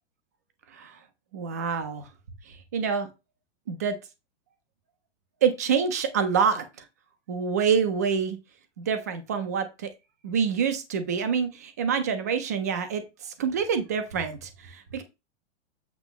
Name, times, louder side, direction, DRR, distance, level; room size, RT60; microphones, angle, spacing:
voice 1, 1.3-2.1 2.5-3.1 3.7-3.9 5.4-6.6 7.3-8.4 8.8-9.9 10.2-15.0, right 6 dB, 15° right, 9 dB, 0.3 m, -26 dB
8.1 x 2.9 x 5.5 m, 0.25 s
supercardioid pair, 170°, 35 cm